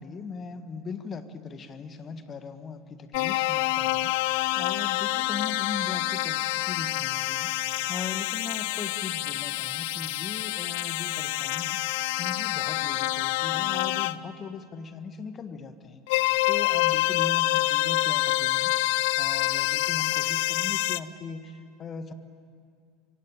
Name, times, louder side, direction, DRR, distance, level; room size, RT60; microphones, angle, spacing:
voice 1, 0.0-16.2 16.5-22.1, left 5 dB, 30° left, 10 dB, 1.6 m, -39 dB
sound 1, 3.1-14.2 16.1-21.0, left 19 dB, 60° left, 0.6 m, -27 dB
25.5 x 24.5 x 9.0 m, 2.2 s
figure-of-eight pair, 75°, 0 cm